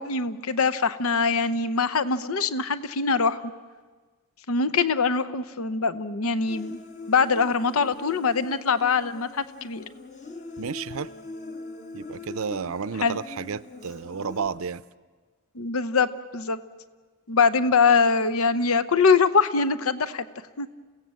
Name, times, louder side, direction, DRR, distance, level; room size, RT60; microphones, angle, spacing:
voice 1, 0.0-3.4 4.5-6.8 7.1-9.8 13.0-13.2 15.6-16.1 16.3-16.6 17.3-20.3 20.6-20.8, left 5 dB, 80° left, 15 dB, 0.8 m, -23 dB
Human voice, 6.5-14.5, left 3 dB, 35° left, 1.5 m, -41 dB
voice 2, 10.6-11.1 11.9-14.8, right 6 dB, 75° right, 17 dB, 0.6 m, -32 dB
29.5 x 16.5 x 7.6 m, 1.4 s
head